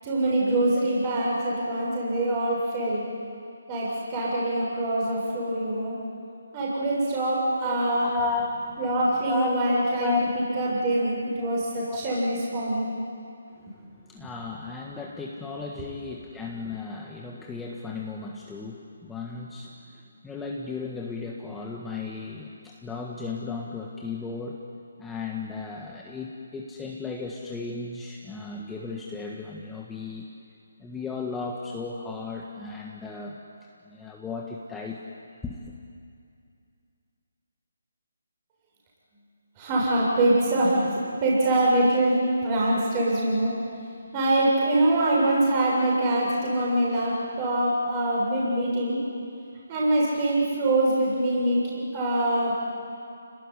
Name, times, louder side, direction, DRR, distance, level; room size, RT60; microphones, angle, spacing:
voice 1, 0.0-3.0 3.7-6.0 6.5-8.1 8.8-10.2 10.6-12.9 39.6-40.9 41.2-43.5 44.1-49.0 49.7-52.5, right 1 dB, 25° right, -5 dB, 7.4 m, -24 dB
voice 2, 7.6-8.8 9.3-9.6 9.9-10.3 11.9-12.0 13.5-24.6 25.0-30.3 30.8-33.4 33.8-35.0 35.4-35.7, left 4 dB, 5° left, -2 dB, 1.6 m, -35 dB
28.5 x 19.0 x 9.9 m, 2.5 s
figure-of-eight pair, 155°, 0 cm